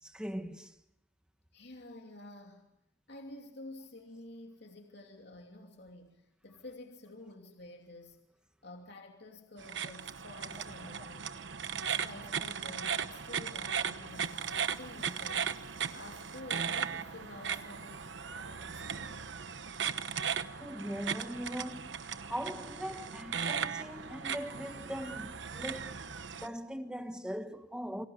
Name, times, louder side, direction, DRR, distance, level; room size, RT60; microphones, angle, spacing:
voice 1, 0.0-0.7 20.6-26.0 26.3-28.1, equal, 5° right, 1.5 m, -40 dB
voice 2, 1.5-2.7 3.1-8.2 8.6-11.5 11.9-19.3, left 2 dB, 60° left, 2.8 m, -50 dB
sound 1, 9.6-26.5, right 7 dB, 65° right, 1.1 m, -37 dB
28.5 x 25.0 x 7.2 m
head